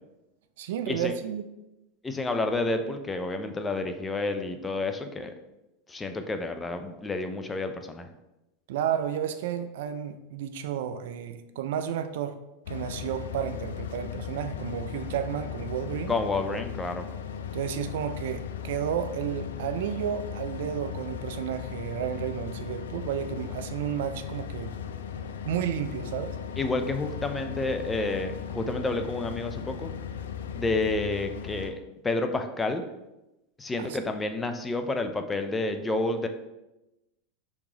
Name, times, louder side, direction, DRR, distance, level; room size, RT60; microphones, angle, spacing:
voice 1, 0.6-1.5 8.7-12.4 12.7-16.1 17.5-24.7 25.4-26.4 33.8-34.0, right 9 dB, 70° right, 9 dB, 0.3 m, -32 dB
voice 2, 2.0-5.3 5.9-8.1 16.1-17.1 26.6-29.9 30.6-31.8 32.0-32.8 33.6-36.3, left 2 dB, 15° left, 7 dB, 0.4 m, -29 dB
sound 1, 12.7-31.7, left 8 dB, 80° left, 0.3 m, -37 dB
3.5 x 3.1 x 3.8 m, 0.96 s
hypercardioid pair, 100°, 0 cm